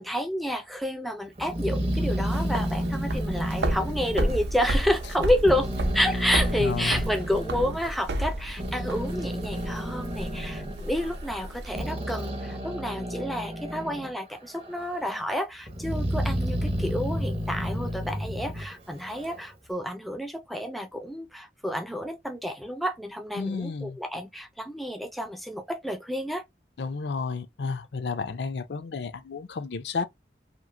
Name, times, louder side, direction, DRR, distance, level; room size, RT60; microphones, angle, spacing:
voice 1, 0.0-26.4, equal, ahead, 0.3 m, -30 dB
Growling, 1.4-5.1 5.4-7.8 8.3-14.2 14.5-15.2 15.7-19.4, equal, 35° right, 0.8 m, -31 dB
sound 1, 1.9-11.8, right 1 dB, 80° right, 0.6 m, -32 dB
voice 2, 6.6-7.0 23.3-24.0 26.8-30.0, left 4 dB, 80° left, 0.5 m, -32 dB
3.0 x 2.5 x 2.5 m
head